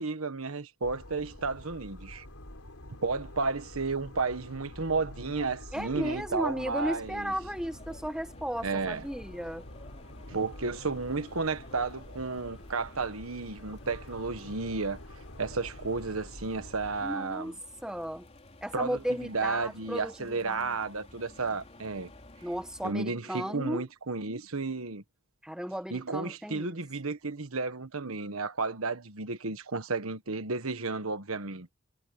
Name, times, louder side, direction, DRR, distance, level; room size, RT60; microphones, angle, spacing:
voice 1, 0.0-2.2 3.0-7.3 8.6-9.0 10.3-15.0 15.4-17.5 18.7-22.1 22.8-25.0 25.9-31.7, right 4 dB, 80° right, 1.4 m, -33 dB
sound 1, 0.8-17.1, left 1 dB, 80° left, 4.0 m, -47 dB
voice 2, 5.7-9.6 17.0-17.5 17.8-18.3 18.6-20.7 22.4-23.8 25.4-26.8, equal, 5° right, 1.0 m, -35 dB
sound 2, 6.7-22.9, left 1 dB, 30° left, 3.8 m, -53 dB
head